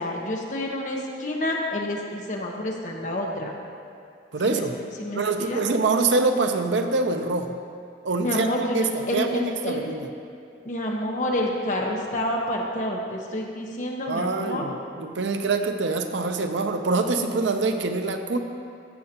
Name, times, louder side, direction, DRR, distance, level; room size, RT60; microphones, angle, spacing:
voice 1, 0.0-3.5 4.4-4.6 5.0-5.6 8.2-9.8 10.6-14.7, left 1 dB, 45° left, -1 dB, 1.0 m, -28 dB
voice 2, 4.3-4.7 5.1-7.6 8.0-8.5 8.7-10.1 14.1-18.4, right 3 dB, 90° right, 6 dB, 0.6 m, -25 dB
14.5 x 6.5 x 2.9 m, 2.5 s
head